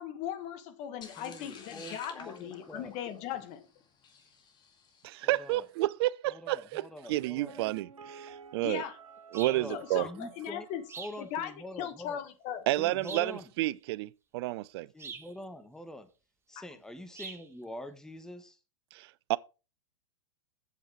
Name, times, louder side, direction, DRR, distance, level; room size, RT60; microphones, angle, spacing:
voice 1, 0.0-3.7 8.6-9.0 9.7-10.8 11.2-12.6 16.6-16.7, left 10 dB, 40° left, 1.8 m, -38 dB
sound 1, 1.0-5.3, left 5 dB, 25° left, 2.2 m, -51 dB
voice 2, 1.2-2.9 5.2-5.6 6.3-7.6 9.5-10.7 11.0-12.2 12.8-13.4 14.9-16.1 16.5-18.6, left 1 dB, 5° left, 1.2 m, -45 dB
voice 3, 5.0-8.8 9.3-10.1 12.7-14.9 18.9-19.4, right 17 dB, 50° right, 0.4 m, -31 dB
Piano, 7.5-11.2 11.5-11.6, right 6 dB, 90° right, 1.0 m, -52 dB
sound 2, 9.3-9.7 10.9-11.2 13.0-13.4 15.0-15.3 17.1-17.5, right 5 dB, 15° right, 1.3 m, -43 dB
8.2 x 7.2 x 4.7 m
hypercardioid pair, 115°, 17 cm